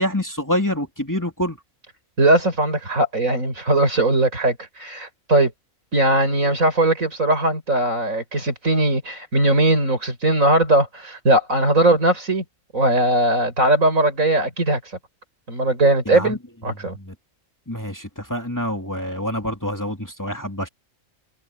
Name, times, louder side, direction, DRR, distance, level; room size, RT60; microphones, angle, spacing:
voice 1, 0.0-1.6 16.1-16.4 16.9-17.1 17.7-20.7, equal, 15° left, 2.7 m, -26 dB
voice 2, 2.2-5.5 5.9-12.4 12.7-14.8 15.5-17.0, right 1 dB, 75° right, 6.1 m, -19 dB
omnidirectional pair, 1.4 m